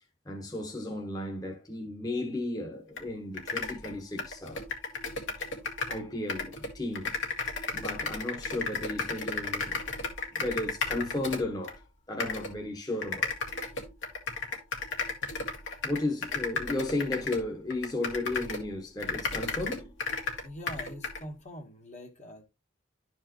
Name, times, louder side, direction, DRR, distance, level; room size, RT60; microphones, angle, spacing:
voice 1, 0.2-4.7 5.9-7.1 7.7-9.8 10.3-11.8 12.1-13.3 15.8-19.9, left 2 dB, 20° left, 1.3 m, -34 dB
sound 1, 3.0-3.1 3.3-6.0 6.3-11.7 12.2-12.5 13.0-18.7 19.0-21.2, left 4 dB, 65° left, 2.1 m, -34 dB
voice 2, 20.4-22.4, left 1 dB, 35° left, 1.4 m, -43 dB
12.0 x 4.7 x 3.0 m
head